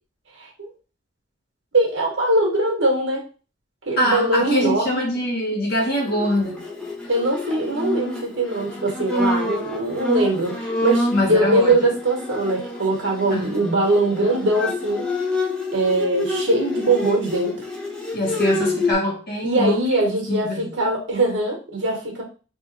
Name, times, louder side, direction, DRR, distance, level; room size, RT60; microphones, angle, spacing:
voice 1, 0.4-0.7 1.7-3.2 3.8-5.0 7.1-15.1 15.7-17.7 19.4-22.2, right 2 dB, 65° right, 0 dB, 1.4 m, -21 dB
voice 2, 4.0-6.6 11.1-11.7 13.3-13.5 18.1-19.8 20.3-20.6, left 1 dB, 50° left, -2 dB, 1.6 m, -23 dB
Bowed string instrument, 6.0-18.9, left 2 dB, 5° left, 0.6 m, -27 dB
3.4 x 3.0 x 3.3 m, 0.35 s
head